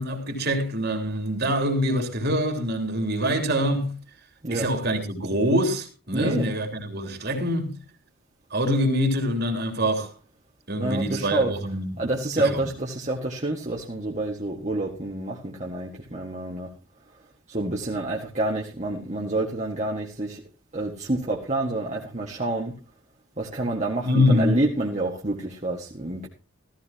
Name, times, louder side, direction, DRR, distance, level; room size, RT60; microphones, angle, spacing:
voice 1, 0.0-3.9 4.5-7.7 8.5-10.1 10.7-12.0 12.4-12.7 24.0-24.6, equal, 45° right, 3.3 m, -25 dB
voice 2, 6.1-6.5 10.8-11.5 12.0-16.7 17.5-20.4 20.7-22.7 23.4-26.3, right 2 dB, 30° right, 1.8 m, -28 dB
16.0 x 14.5 x 2.9 m
head